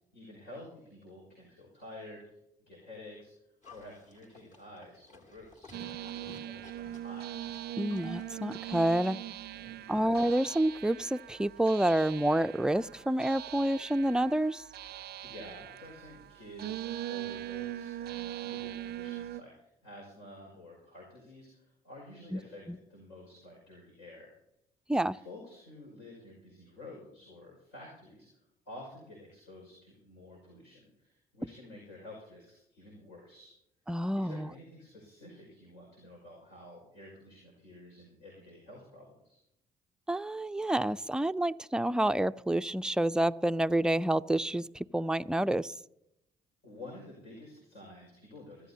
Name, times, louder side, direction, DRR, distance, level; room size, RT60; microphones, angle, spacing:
voice 1, 0.1-2.2 2.7-3.3 3.7-7.4 9.5-9.9 15.2-24.3 25.1-28.4 28.7-33.5 34.2-39.4 46.6-48.7, left 1 dB, 75° left, 5.6 m, -50 dB
Livestock farm animals working animals, 3.6-9.4, left 3 dB, 40° left, 2.3 m, -55 dB
sound 1, 5.7-19.4, right 13 dB, 55° right, 0.5 m, -41 dB
voice 2, 7.8-9.2 9.9-14.6 22.3-22.4 22.7-22.8 24.9-25.2 33.9-34.5 40.1-45.7, right 1 dB, 5° right, 0.4 m, -28 dB
25.0 x 13.5 x 2.8 m
hypercardioid pair, 55°, 19 cm